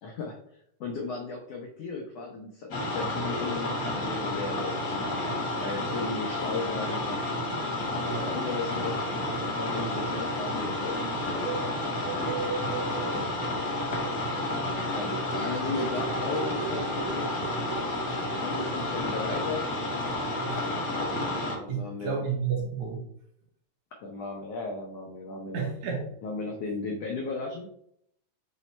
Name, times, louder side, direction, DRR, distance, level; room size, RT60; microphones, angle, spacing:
voice 1, 0.0-7.2 7.9-9.0 9.4-11.2 12.0-12.4 13.0-13.3 14.9-17.4 18.4-19.7 21.6-22.2 24.0-25.7 26.2-27.7, left 3 dB, 85° left, 1 dB, 1.4 m, -36 dB
sound 1, 2.7-21.6, left 1 dB, 55° left, 1.1 m, -31 dB
sound 2, 5.2-6.0 6.4-20.5, right 5 dB, 90° right, 2.3 m, -41 dB
voice 2, 8.1-8.4 20.5-20.9 21.7-23.0 25.5-26.0, right 6 dB, 70° right, -1 dB, 2.2 m, -32 dB
5.9 x 2.1 x 4.1 m, 0.71 s
omnidirectional pair, 3.5 m